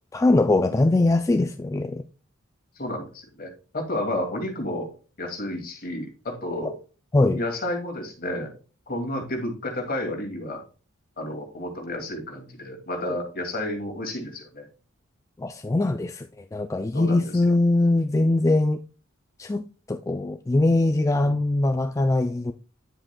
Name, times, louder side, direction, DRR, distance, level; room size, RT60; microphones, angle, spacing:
voice 1, 0.1-2.0 6.6-6.7 7.1-7.4 13.0-13.2 15.4-18.8 19.4-22.5, left 2 dB, 15° left, 0.3 m, -22 dB
voice 2, 2.8-4.9 5.2-6.7 7.3-8.5 8.9-10.6 11.2-14.7 16.9-17.5 21.2-21.3, left 1 dB, 45° left, 2.3 m, -31 dB
9.7 x 7.8 x 2.2 m
head